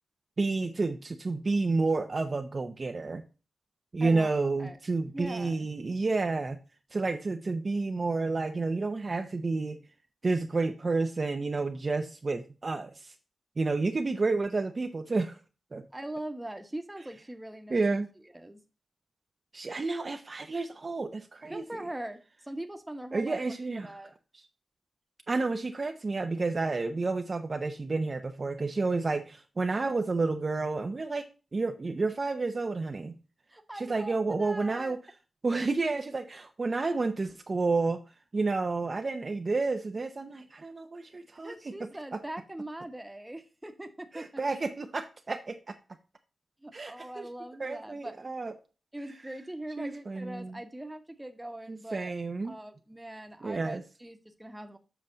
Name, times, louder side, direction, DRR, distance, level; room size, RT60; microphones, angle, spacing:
voice 1, 0.4-3.2 3.9-6.6 6.9-9.8 10.2-13.1 13.6-15.4 15.7-15.8 17.7-18.1 19.5-21.6 23.1-23.9 25.3-31.3 31.5-33.2 33.8-35.0 35.4-38.0 38.3-41.7 42.1-42.2 44.1-45.7 46.7-47.3 47.6-48.5 49.8-50.6 51.7-52.5 53.4-53.8, right 3 dB, 40° right, 5 dB, 0.7 m, -30 dB
voice 2, 4.0-4.3 4.6-4.8 5.1-5.7 15.9-17.8 18.3-18.6 21.5-22.2 22.4-23.4 23.8-24.1 33.5-35.0 41.4-44.4 46.6-48.2 48.9-52.1 52.4-54.8, right 1 dB, 10° right, 7 dB, 1.1 m, -41 dB
7.6 x 5.8 x 3.8 m, 0.32 s
wide cardioid pair, 100°, 0 cm